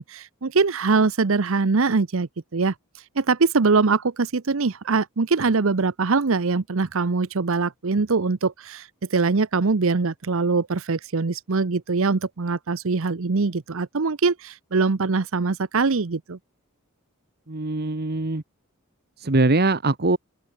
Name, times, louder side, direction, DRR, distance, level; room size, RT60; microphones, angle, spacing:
voice 1, 0.0-2.7 3.2-16.4, right 4 dB, 65° right, 0.8 m, -23 dB
voice 2, 17.5-18.4 19.2-20.2, right 2 dB, 50° right, 1.4 m, -22 dB
open air
head